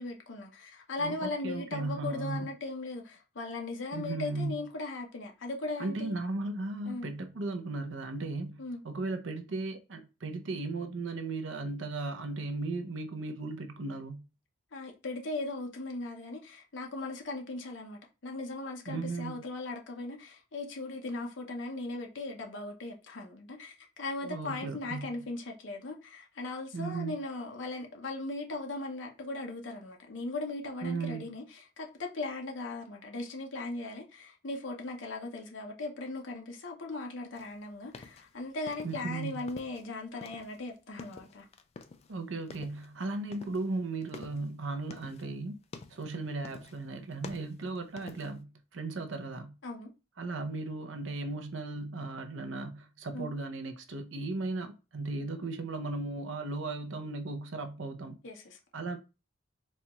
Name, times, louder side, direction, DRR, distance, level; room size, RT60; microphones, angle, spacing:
voice 1, 0.0-6.1 6.9-7.1 8.6-8.8 14.7-41.5 49.6-49.9 53.1-53.3 58.2-58.6, left 2 dB, 70° left, 0.8 m, -38 dB
voice 2, 1.0-2.5 3.9-4.7 5.8-14.3 18.9-19.4 24.2-25.2 26.7-27.2 30.8-31.3 38.8-39.5 42.1-45.6 45.9-49.6 50.2-58.2 58.7-59.0, right 3 dB, 70° right, 0.6 m, -36 dB
sound 1, 37.3-39.9 40.1-42.2 42.4-42.9 43.3-45.3 45.6-46.1 46.4-46.9 47.1-48.4, left 4 dB, 35° left, 0.3 m, -48 dB
4.2 x 2.4 x 2.9 m
head